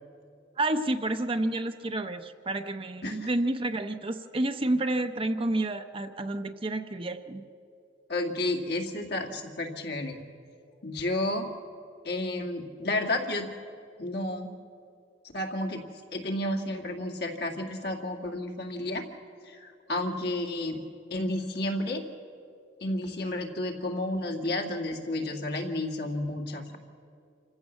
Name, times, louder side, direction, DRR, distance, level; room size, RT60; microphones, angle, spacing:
voice 1, 0.6-7.4, right 2 dB, 30° right, 8 dB, 0.7 m, -29 dB
voice 2, 8.1-10.2 10.8-11.5 12.0-13.5 14.0-14.5 15.3-15.8 16.1-19.0 19.4-20.8 21.1-22.0 22.8-26.8, left 1 dB, 60° left, 2 dB, 2.2 m, -31 dB
27.0 x 15.5 x 7.3 m, 2.4 s
head